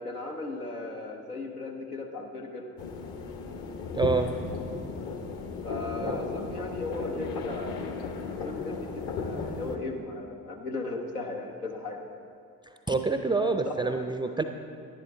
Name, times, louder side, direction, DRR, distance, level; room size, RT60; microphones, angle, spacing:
voice 1, 0.0-2.6 5.6-12.2 13.6-14.3, left 2 dB, 90° left, 2 dB, 0.8 m, -37 dB
sound 1, 2.8-9.8, left 4 dB, 55° left, 1.2 m, -35 dB
voice 2, 3.9-4.3 5.9-6.3 12.9-14.4, right 3 dB, 10° right, 7 dB, 0.4 m, -27 dB
11.0 x 10.5 x 3.4 m, 2.4 s
figure-of-eight pair, 45°, 44 cm